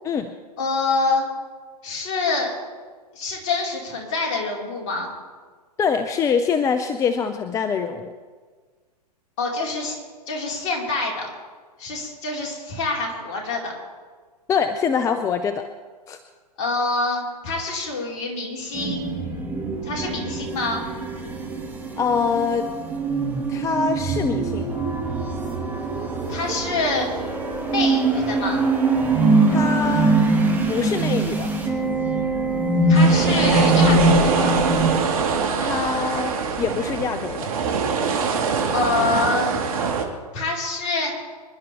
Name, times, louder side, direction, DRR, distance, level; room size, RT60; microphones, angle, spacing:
voice 1, 0.6-1.3 1.8-2.5 3.1-5.1 9.4-10.0 10.3-11.3 11.8-13.7 16.6-19.2 19.8-20.8 26.3-27.1 27.7-28.6 32.9-34.6 38.7-39.6 40.3-41.1, left 3 dB, 45° left, -2 dB, 4.8 m, -26 dB
voice 2, 5.8-8.1 14.5-15.6 16.1-16.2 22.0-22.7 23.5-24.7 29.5-30.2 30.7-31.5 35.6-37.5, left 6 dB, 15° left, 9 dB, 0.6 m, -24 dB
sound 1, 18.7-35.0, right 2 dB, 10° right, 2.7 m, -22 dB
sound 2, 32.9-40.0, right 5 dB, 60° right, 2.4 m, -23 dB
26.0 x 11.5 x 3.5 m, 1.5 s
figure-of-eight pair, 115°, 21 cm